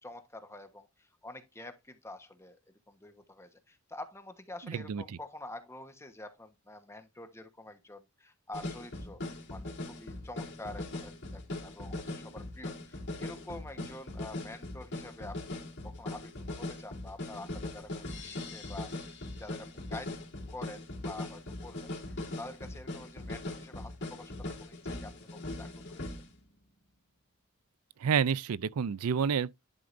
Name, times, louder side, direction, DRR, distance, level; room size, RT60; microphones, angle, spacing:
voice 1, 0.0-2.6 2.9-9.2 9.5-15.6 15.8-20.2 20.5-26.1, left 2 dB, 10° left, 1.2 m, -47 dB
voice 2, 4.6-5.0 13.8-13.9 28.0-29.5, right 6 dB, 80° right, 0.4 m, -29 dB
sound 1, 8.5-26.4, left 2 dB, 50° left, 3.4 m, -40 dB
11.0 x 4.9 x 2.6 m
head